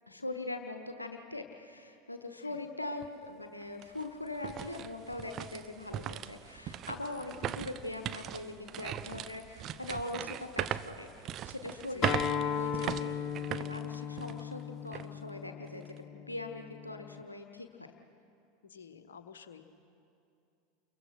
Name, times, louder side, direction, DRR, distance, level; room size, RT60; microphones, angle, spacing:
voice 1, 0.1-11.1 11.4-17.9, left 2 dB, 90° left, 5 dB, 1.2 m, -41 dB
sound 1, 3.0-3.1 3.6-14.5 14.9-15.1 15.6-16.0, right 10 dB, 40° right, 0.7 m, -39 dB
voice 2, 11.9-12.2 18.6-19.7, left 6 dB, 70° left, 7 dB, 1.3 m, -52 dB
Acoustic guitar, 12.0-17.2, left 8 dB, 40° left, 1.0 m, -37 dB
29.5 x 22.5 x 6.0 m, 2.5 s
figure-of-eight pair, 80°, 0 cm